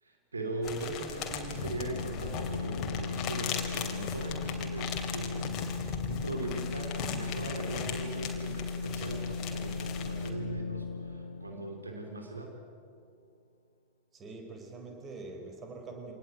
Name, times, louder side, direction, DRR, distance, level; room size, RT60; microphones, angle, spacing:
voice 1, 0.0-12.5, right 2 dB, 75° right, 3 dB, 3.1 m, -40 dB
sound 1, 0.6-10.3, left 7 dB, 35° left, 3.2 m, -39 dB
sound 2, 1.2-12.7, left 4 dB, 70° left, 1.7 m, -37 dB
voice 2, 14.1-16.1, right 3 dB, 25° right, 4 dB, 4.8 m, -44 dB
26.0 x 19.0 x 9.2 m, 2.5 s
figure-of-eight pair, 90°, 0 cm